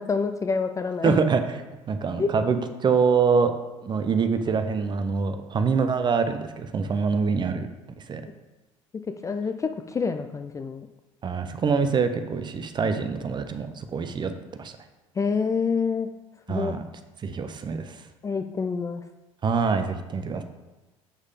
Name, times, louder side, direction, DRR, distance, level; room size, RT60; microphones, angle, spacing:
voice 1, 0.0-1.2 2.2-2.3 9.2-10.9 15.2-16.1 16.5-16.8 18.2-19.0, left 5 dB, 20° left, 7 dB, 0.4 m, -27 dB
voice 2, 1.0-1.4 1.9-3.5 3.8-7.7 8.1-8.2 11.2-14.3 14.6-14.8 16.5-16.8 17.2-18.0 19.4-20.4, right 5 dB, 30° right, 9 dB, 0.8 m, -25 dB
7.2 x 6.4 x 3.7 m, 1.1 s
figure-of-eight pair, 60°, 16 cm